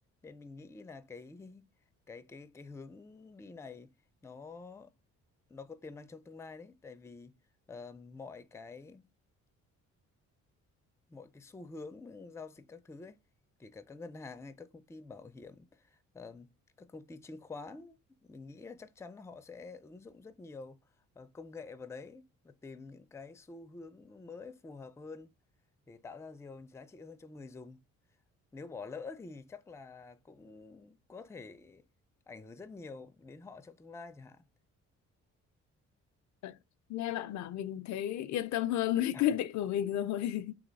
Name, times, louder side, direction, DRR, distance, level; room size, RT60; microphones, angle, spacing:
voice 1, 0.2-1.7 2.1-3.9 4.2-4.9 5.5-7.4 7.7-9.1 11.1-13.2 13.6-16.5 16.8-18.0 18.2-20.8 21.2-25.3 25.9-27.8 28.5-31.8 32.3-34.5 39.1-39.3, left 4 dB, 10° left, 0.4 m, -48 dB
voice 2, 36.9-40.5, left 12 dB, 70° left, 0.4 m, -32 dB
3.1 x 3.0 x 3.9 m
cardioid pair, 90°, 30 cm